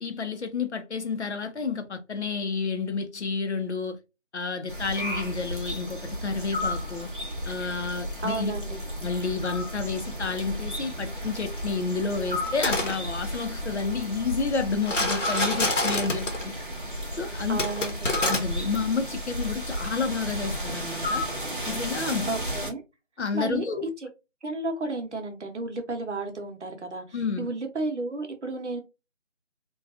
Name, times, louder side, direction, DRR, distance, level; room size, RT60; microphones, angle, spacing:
voice 1, 0.0-4.0 4.3-7.1 7.4-8.5 9.0-16.6 17.2-17.6 18.1-21.2 21.7-22.3 23.2-23.8 27.1-27.5, left 4 dB, 65° left, 0.6 m, -30 dB
sound 1, 4.7-22.7, equal, 45° right, 0.6 m, -33 dB
voice 2, 8.2-8.8 17.5-18.1 22.3-22.8 23.3-24.1 24.4-28.8, right 2 dB, 70° right, 0.8 m, -32 dB
sound 2, 12.5-12.9 14.8-16.4 17.6-18.4, left 2 dB, 85° left, 0.9 m, -26 dB
2.5 x 2.3 x 2.4 m
figure-of-eight pair, 170°, 37 cm